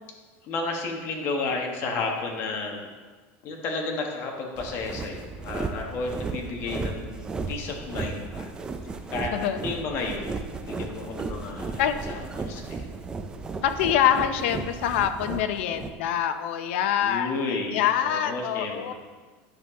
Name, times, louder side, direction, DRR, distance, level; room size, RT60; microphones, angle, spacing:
voice 1, 0.4-2.8 3.4-8.5 9.1-10.3 10.6-12.8 17.0-18.9, left 3 dB, 40° left, 1 dB, 1.4 m, -32 dB
sound 1, 4.6-15.9, right 4 dB, 15° right, 0.4 m, -35 dB
voice 2, 13.6-18.9, left 10 dB, 85° left, 8 dB, 0.7 m, -25 dB
9.7 x 6.8 x 3.7 m, 1.4 s
cardioid pair, 165°, 6 cm